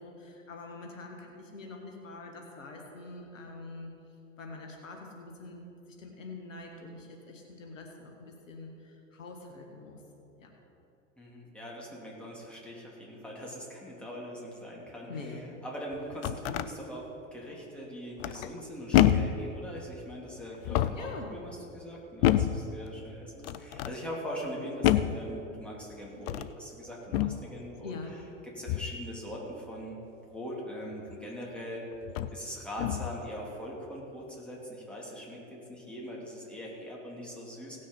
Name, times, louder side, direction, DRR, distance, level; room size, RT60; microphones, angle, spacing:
voice 1, 0.0-3.9 4.4-5.7 6.0-10.0 10.4-10.5 15.1-15.4 21.0-21.3 27.8-28.1, left 3 dB, 75° left, 2 dB, 1.8 m, -44 dB
voice 2, 11.2-27.9 28.4-30.0 30.3-31.9 32.3-37.8, equal, 5° left, -4 dB, 3.0 m, -41 dB
sound 1, 15.9-16.7 18.2-18.6 18.9-19.4 20.5-21.1 22.2-22.6 23.4-24.0 24.8-25.2 26.2-26.6 27.1-27.4 28.7-29.0 31.1-31.2 32.1-32.4 32.8-33.2, left 12 dB, 50° left, 0.6 m, -27 dB
17.5 x 6.4 x 5.5 m, 2.9 s
figure-of-eight pair, 85°, 38 cm